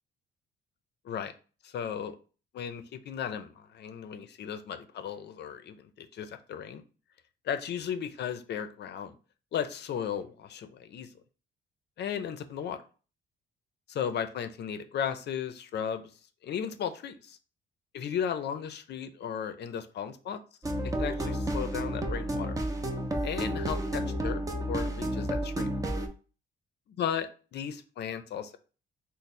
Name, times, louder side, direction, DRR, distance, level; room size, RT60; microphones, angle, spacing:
voice 1, 1.6-2.2 2.5-6.8 7.4-9.1 9.5-11.1 12.0-12.8 13.9-16.1 16.4-17.4 17.9-20.4 20.8-22.6 23.2-24.4 24.7-25.7 27.0-27.3 27.5-28.6, left 8 dB, 60° left, 9 dB, 0.5 m, -35 dB
sound 1, 20.6-26.1, right 1 dB, 15° right, 0.5 m, -31 dB
3.2 x 2.1 x 4.1 m, 0.36 s
cardioid pair, 90°, 20 cm